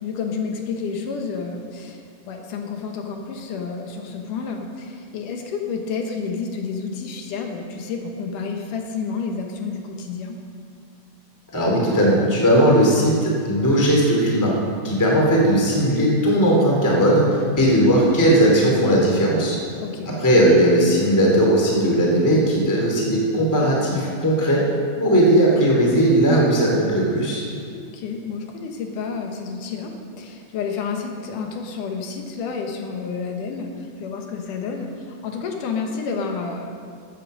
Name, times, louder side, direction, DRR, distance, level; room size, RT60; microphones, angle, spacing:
voice 1, 0.0-10.4 19.8-20.1 27.7-36.7, left 5 dB, 85° left, 3 dB, 2.8 m, -30 dB
voice 2, 11.5-14.5 14.8-19.6 20.2-24.6 25.0-27.4, right 1 dB, 5° left, -3 dB, 2.3 m, -17 dB
14.0 x 8.7 x 6.7 m, 2.2 s
omnidirectional pair, 3.6 m